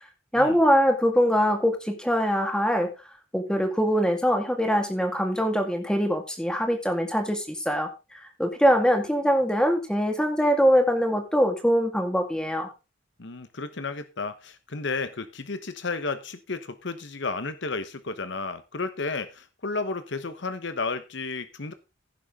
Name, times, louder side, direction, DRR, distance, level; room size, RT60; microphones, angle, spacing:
voice 1, 0.3-2.9 3.3-12.7, equal, 5° left, 2.1 m, -23 dB
voice 2, 13.2-21.7, left 3 dB, 60° left, 1.1 m, -32 dB
16.0 x 7.0 x 3.7 m
head